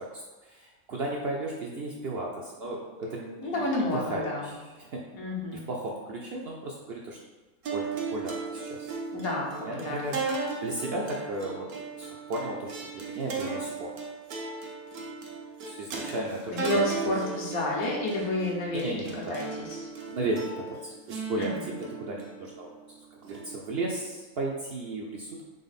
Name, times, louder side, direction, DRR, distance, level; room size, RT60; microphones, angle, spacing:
voice 1, 0.0-3.6 3.9-5.0 5.5-7.2 7.7-8.9 9.7-10.2 10.6-11.7 12.0-13.9 15.7-16.8 18.7-19.4 20.1-22.7 23.2-25.4, right 2 dB, 65° right, -2 dB, 0.6 m, -35 dB
voice 2, 3.4-4.5 5.1-5.6 9.1-10.2 16.5-18.9 19.3-19.9 21.4-21.6, left 1 dB, 80° left, -2 dB, 1.4 m, -30 dB
sound 1, 7.6-24.1, right 4 dB, 90° right, 1.3 m, -37 dB
3.9 x 3.4 x 4.0 m, 1.2 s
omnidirectional pair, 1.5 m